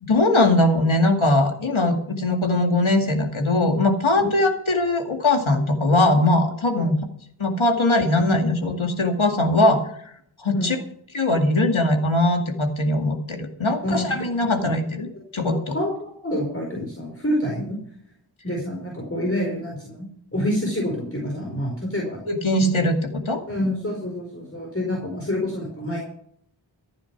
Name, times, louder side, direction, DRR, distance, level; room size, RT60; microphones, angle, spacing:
voice 1, 0.0-7.0 7.4-9.8 10.4-10.8 11.1-15.7 22.3-23.0 23.3-23.4, left 2 dB, 80° left, 4 dB, 2.4 m, -20 dB
voice 2, 13.8-14.7 15.1-15.2 15.5-17.8 18.4-20.1 20.3-22.2 22.6-22.8 23.5-26.0, left 1 dB, 30° left, -1 dB, 4.8 m, -27 dB
15.0 x 9.6 x 6.0 m, 0.67 s
wide cardioid pair, 45°, 47 cm